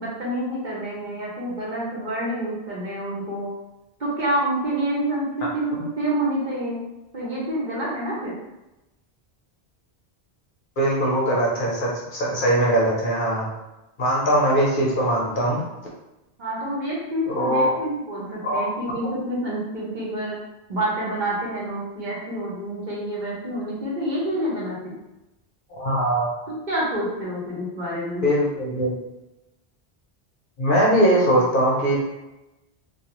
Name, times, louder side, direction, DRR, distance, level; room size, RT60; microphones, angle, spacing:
voice 1, 0.0-3.5 4.0-6.9 7.1-8.3 16.4-20.4 20.7-25.0 26.5-28.2, right 1 dB, 50° right, -6 dB, 0.8 m, -28 dB
voice 2, 10.8-13.5 14.0-15.6 17.3-17.7 18.4-18.7 25.7-26.3 28.2-28.9 30.6-32.0, right 1 dB, 60° left, -4 dB, 0.8 m, -21 dB
2.4 x 2.3 x 2.9 m, 0.97 s
omnidirectional pair, 1.1 m